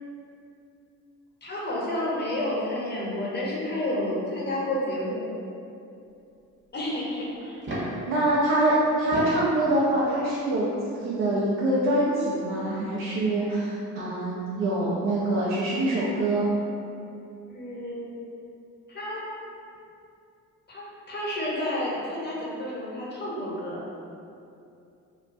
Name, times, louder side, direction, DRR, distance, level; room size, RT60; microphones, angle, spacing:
voice 1, 1.4-5.3 6.7-7.6 17.5-18.1 18.9-19.2 20.7-23.8, left 1 dB, 25° left, -6 dB, 0.8 m, -30 dB
sound 1, 7.5-8.1 8.9-9.5 10.8-10.9 12.7-12.8 13.0-13.1, equal, 25° right, 0.8 m, -32 dB
voice 2, 8.1-16.5, right 1 dB, 75° right, -9 dB, 0.6 m, -25 dB
2.3 x 2.1 x 2.5 m, 2.6 s
hypercardioid pair, 55°, 43 cm